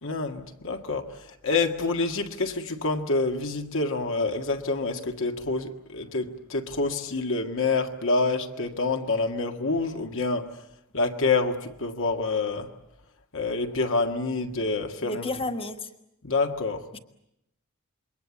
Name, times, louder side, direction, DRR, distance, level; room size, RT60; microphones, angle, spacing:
voice 1, 0.0-1.1 1.4-10.5 10.9-12.7 13.3-15.3 16.2-16.8, left 3 dB, 65° left, 1.8 m, -27 dB
voice 2, 15.0-15.9 16.9-17.0, left 2 dB, 25° left, 1.6 m, -31 dB
27.5 x 22.5 x 8.4 m
head